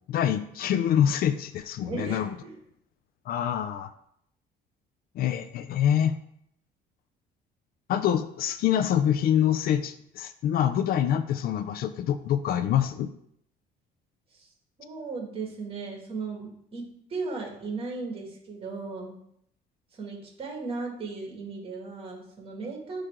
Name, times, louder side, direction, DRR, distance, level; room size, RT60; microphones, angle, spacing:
voice 1, 0.1-2.3 3.3-3.9 5.2-6.1 7.9-13.1, left 10 dB, 60° left, 11 dB, 0.4 m, -25 dB
voice 2, 1.9-2.6 14.3-14.5 14.8-16.8 17.1-19.1 19.9-23.1, right 4 dB, 35° right, -1 dB, 2.1 m, -36 dB
9.3 x 3.2 x 3.7 m, 0.72 s
cardioid pair, 110°, 17 cm